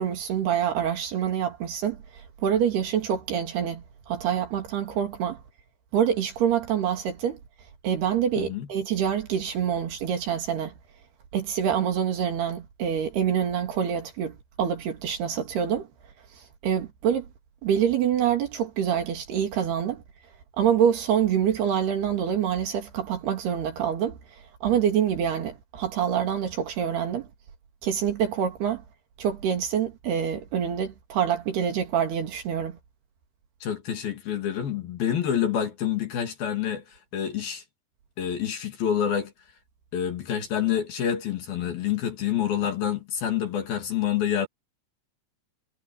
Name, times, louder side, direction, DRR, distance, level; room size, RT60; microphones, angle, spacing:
voice 1, 0.0-5.4 5.9-7.4 7.8-10.7 11.3-15.9 16.6-17.3 17.6-20.0 20.6-24.2 24.6-27.3 27.8-28.8 29.2-32.8, right 8 dB, 60° right, 4.5 m, -26 dB
voice 2, 8.4-8.7 33.6-37.6 38.2-39.3 39.9-44.5, left 9 dB, 55° left, 4.1 m, -27 dB
omnidirectional pair, 5.3 m